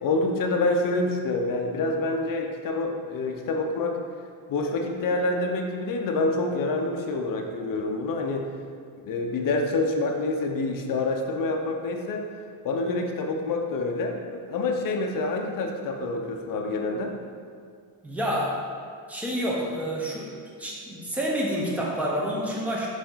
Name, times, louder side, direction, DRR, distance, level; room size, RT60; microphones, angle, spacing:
voice 1, 0.0-4.0 4.5-8.5 9.1-12.2 12.6-17.1, left 2 dB, 50° left, 3 dB, 0.6 m, -27 dB
voice 2, 18.0-18.5 19.1-20.3 20.6-22.9, equal, 5° right, -4 dB, 0.7 m, -28 dB
7.1 x 4.0 x 3.8 m, 2.2 s
cardioid pair, 180°, 45 cm